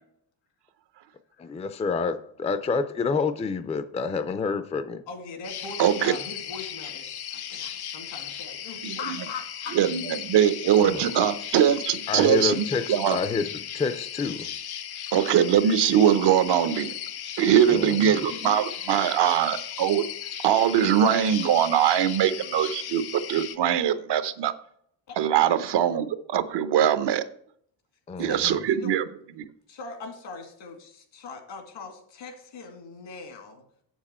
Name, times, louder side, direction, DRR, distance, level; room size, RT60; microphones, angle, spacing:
voice 1, 1.4-5.0 10.8-11.1 12.1-14.5 17.7-18.2 28.1-28.6, left 4 dB, 15° left, 11 dB, 0.4 m, -28 dB
voice 2, 5.1-9.8 18.3-18.6 25.1-25.2 28.3-29.0 29.7-33.6, left 4 dB, 80° left, 4 dB, 2.2 m, -40 dB
sound 1, 5.4-23.6, left 9 dB, 60° left, 0.8 m, -36 dB
voice 3, 5.8-6.1 8.8-9.2 9.7-13.2 15.1-16.9 17.4-20.0 20.4-24.5 25.2-27.2 28.2-29.0, right 9 dB, 70° right, 12 dB, 0.8 m, -22 dB
7.4 x 7.3 x 4.3 m, 0.66 s
cardioid pair, 145°, 43 cm